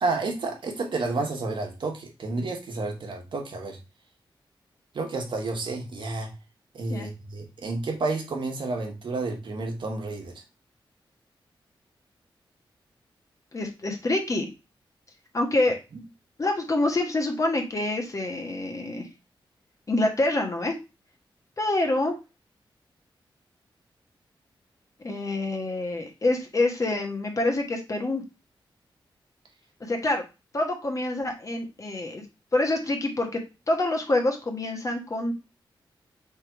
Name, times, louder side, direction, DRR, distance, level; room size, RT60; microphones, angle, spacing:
voice 1, 0.0-3.8 4.9-6.3 6.7-10.3 15.9-16.0, right 3 dB, 65° right, 2 dB, 1.2 m, -30 dB
voice 2, 13.5-14.5 15.3-15.8 16.4-19.1 19.9-20.7 21.6-22.2 25.0-28.2 29.8-30.2 30.5-32.2 32.5-33.4 33.7-35.3, left 2 dB, 35° left, 3 dB, 1.2 m, -26 dB
3.5 x 3.4 x 4.5 m, 0.28 s
wide cardioid pair, 95°, 9 cm